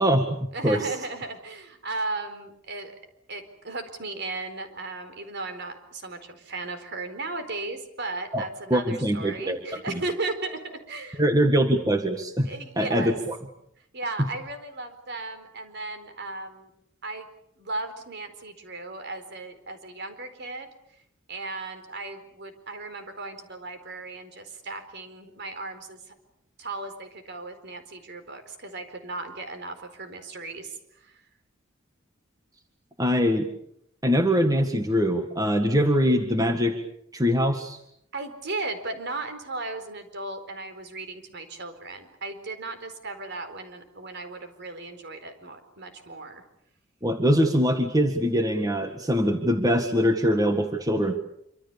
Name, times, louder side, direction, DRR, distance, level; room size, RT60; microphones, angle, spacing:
voice 1, 0.0-0.9 8.3-9.6 9.9-10.0 11.2-12.5 12.8-13.4 14.2-14.3 33.0-33.5 34.0-36.8 37.1-37.8 47.0-51.2, equal, 20° right, 5 dB, 1.8 m, -23 dB
voice 2, 0.5-2.9 3.3-10.6 10.9-11.2 12.4-13.2 13.9-16.7 17.0-17.3 17.6-20.7 21.3-26.0 26.6-31.2 38.1-46.4, right 3 dB, 55° right, 8 dB, 4.4 m, -36 dB
26.5 x 26.0 x 7.0 m, 0.74 s
head